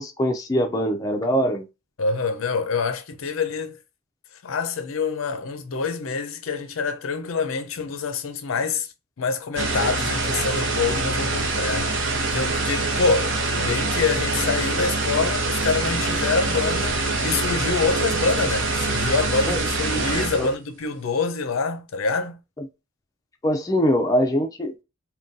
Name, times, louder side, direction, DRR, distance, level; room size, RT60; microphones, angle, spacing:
voice 1, 0.0-1.7 19.5-19.6 20.4-20.5 23.4-24.8, equal, 15° left, 0.4 m, -22 dB
voice 2, 2.0-3.8 4.4-8.9 9.2-11.9 12.3-22.4, left 4 dB, 85° left, 0.5 m, -26 dB
sound 1, 9.6-20.5, right 2 dB, 65° right, 0.7 m, -24 dB
3.7 x 2.2 x 2.6 m
head